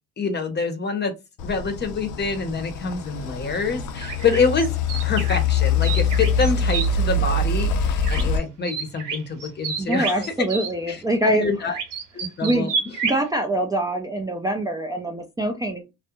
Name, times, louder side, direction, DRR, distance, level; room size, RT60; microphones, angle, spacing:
voice 1, 0.2-1.1 1.4-4.7 5.0-10.3 10.9-11.7 12.1-12.7, left 4 dB, 35° left, 0.7 m, -26 dB
sound 1, 1.4-8.4, left 4 dB, 75° left, 0.5 m, -24 dB
sound 2, 4.0-6.9 8.0-8.4 8.6-10.7 11.7-13.2, right 5 dB, 85° right, 0.9 m, -29 dB
voice 2, 9.8-11.5 12.4-12.7 13.0-15.8, right 1 dB, 10° right, 0.4 m, -24 dB
2.3 x 2.1 x 2.9 m
cardioid pair, 100°, 31 cm